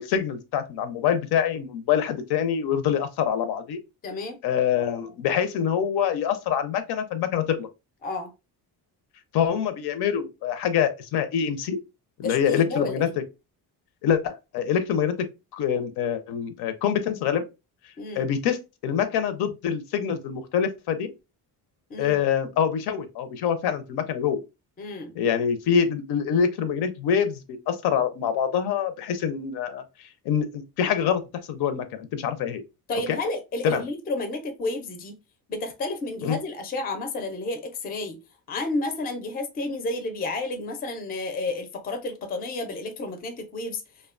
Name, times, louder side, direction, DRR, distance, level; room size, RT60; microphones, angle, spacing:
voice 1, 0.0-3.8 4.4-7.7 9.3-11.8 12.2-13.2 14.0-15.2 15.5-17.5 18.1-21.1 22.0-24.4 25.2-29.8 30.2-31.2 31.5-32.6 33.1-33.2 33.6-33.8 36.2-36.4, left 8 dB, 75° left, 0.5 m, -25 dB
voice 2, 4.0-4.4 8.0-8.3 12.2-13.1 18.0-18.3 21.9-22.2 24.8-25.1 32.9-35.2 35.5-38.2 38.5-43.8, left 2 dB, 25° left, 0.4 m, -31 dB
2.6 x 2.1 x 2.3 m
cardioid pair, 150°, 39 cm